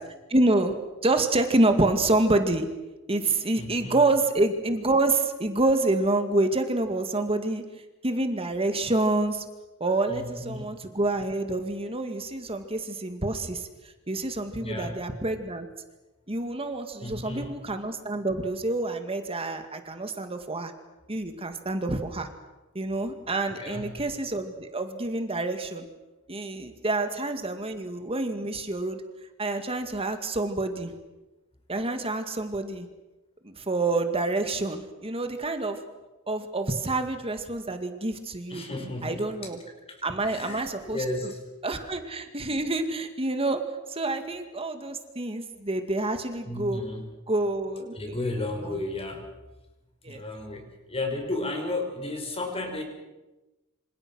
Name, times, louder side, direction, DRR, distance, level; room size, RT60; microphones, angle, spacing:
voice 1, 0.3-0.7 1.0-2.7 3.1-7.6 8.0-9.4 9.8-13.7 14.1-15.7 16.3-20.7 21.1-22.3 22.7-25.8 26.3-29.0 29.4-30.9 31.7-32.9 33.4-35.8 36.3-38.6 39.0-39.6 40.0-41.0 41.6-43.6 43.9-46.8 47.3-48.2 48.6-48.7 50.0-50.2, right 2 dB, 25° right, 7 dB, 2.1 m, -27 dB
voice 2, 3.5-4.0 10.1-10.6 14.5-14.9 17.0-17.6 23.6-23.9 38.5-39.5 39.9-41.4 46.4-47.0 47.9-49.3 50.1-52.8, left 2 dB, 25° left, 4 dB, 5.6 m, -33 dB
27.0 x 27.0 x 6.4 m, 1.1 s
head